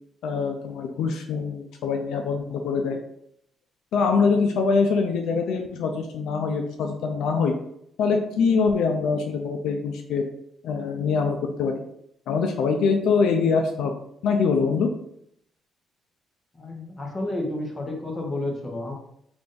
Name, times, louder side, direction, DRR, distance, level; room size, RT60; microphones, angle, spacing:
voice 1, 0.2-3.0 3.9-7.5 8.0-10.2 10.6-11.8 12.3-13.9 14.2-14.9, left 5 dB, 85° left, 4 dB, 0.4 m, -24 dB
voice 2, 16.5-18.9, left 2 dB, 30° left, 1 dB, 1.0 m, -31 dB
3.4 x 2.5 x 3.8 m, 0.72 s
cardioid pair, 90°, 0 cm